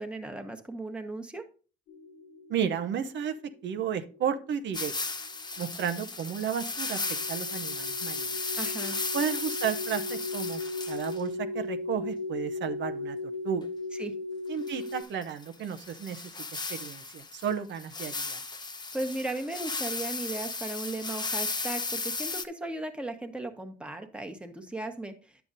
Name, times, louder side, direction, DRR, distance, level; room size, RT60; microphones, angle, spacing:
voice 1, 0.0-1.4 8.5-9.0 13.9-14.1 18.9-25.1, right 2 dB, 5° right, 5 dB, 1.2 m, -36 dB
sound 1, 1.9-15.0, left 2 dB, 90° left, 1.5 m, -38 dB
voice 2, 2.5-3.3 3.6-4.9 5.6-7.0 7.3-8.4 9.1-10.6 10.9-13.2 13.4-13.7 14.5-16.2 16.7-18.4, right 8 dB, 65° right, 8 dB, 0.7 m, -33 dB
sound 2, 4.7-11.2 14.7-22.4, left 3 dB, 20° left, 0.8 m, -35 dB
9.9 x 6.9 x 2.6 m, 0.36 s
cardioid pair, 90°, 20 cm